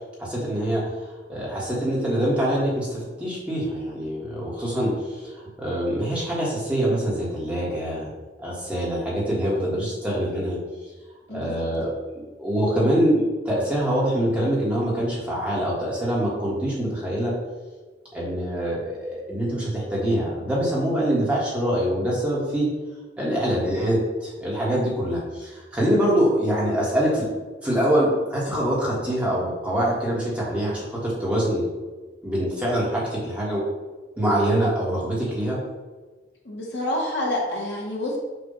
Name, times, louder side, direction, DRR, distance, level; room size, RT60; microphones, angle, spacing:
voice 1, 0.2-0.9 1.3-8.1 8.4-10.6 11.3-17.3 18.1-22.7 23.2-27.3 27.6-31.6 32.2-33.6 34.2-35.6, equal, 5° right, -6 dB, 1.5 m, -24 dB
voice 2, 11.3-11.6 23.2-23.3 36.5-38.2, left 1 dB, 70° left, -3 dB, 1.7 m, -28 dB
6.8 x 2.7 x 5.6 m, 1.3 s
head